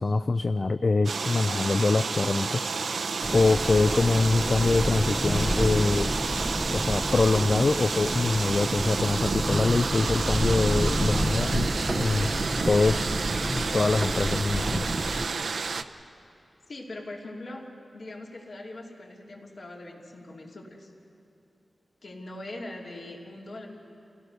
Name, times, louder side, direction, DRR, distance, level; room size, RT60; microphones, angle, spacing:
voice 1, 0.0-2.6 3.3-6.1 6.7-12.3 12.7-13.2 13.5-14.9, left 3 dB, 45° left, 10 dB, 0.4 m, -24 dB
sound 1, 1.1-15.8, right 4 dB, 75° right, 0.7 m, -30 dB
sound 2, 3.2-15.3, right 1 dB, 10° right, 0.6 m, -30 dB
voice 2, 16.7-20.9 22.0-23.7, left 2 dB, 60° left, -2 dB, 3.0 m, -41 dB
29.0 x 17.0 x 6.5 m, 2.9 s
wide cardioid pair, 120°, 0 cm